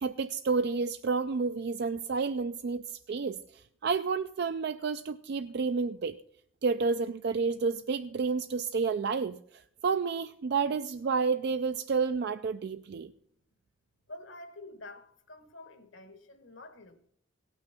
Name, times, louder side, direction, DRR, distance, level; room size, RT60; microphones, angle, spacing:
voice 1, 0.0-3.4 3.8-6.2 6.6-9.4 9.8-13.1, right 4 dB, 55° right, 0.4 m, -30 dB
voice 2, 14.1-17.1, left 2 dB, 65° left, 1.3 m, -48 dB
17.0 x 6.2 x 5.8 m
head